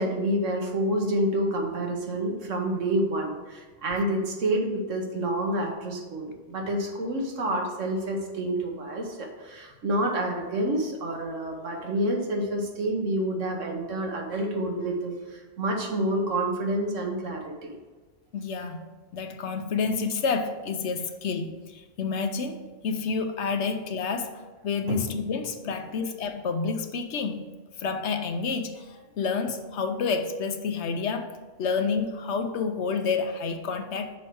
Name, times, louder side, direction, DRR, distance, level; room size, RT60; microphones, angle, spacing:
voice 1, 0.0-17.8 24.9-25.1, right 1 dB, 85° right, 2 dB, 1.5 m, -28 dB
voice 2, 18.3-18.8 19.1-24.3 24.6-27.4 27.8-28.7 29.2-31.3 31.6-34.1, left 5 dB, 70° left, 7 dB, 1.0 m, -29 dB
6.2 x 4.5 x 6.1 m, 1.3 s
omnidirectional pair, 1.3 m